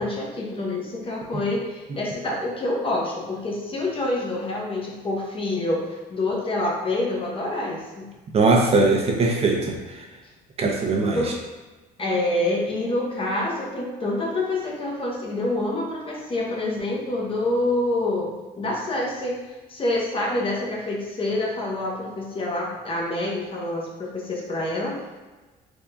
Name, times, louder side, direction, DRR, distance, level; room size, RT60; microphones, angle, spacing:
voice 1, 0.0-8.1 11.1-11.3 12.0-19.4 19.7-25.0, left 2 dB, 30° left, -2 dB, 0.9 m, -27 dB
voice 2, 8.3-9.7 10.6-11.2, right 3 dB, 35° right, 0 dB, 0.6 m, -20 dB
3.5 x 2.7 x 3.4 m, 1.2 s
cardioid pair, 110°, 17 cm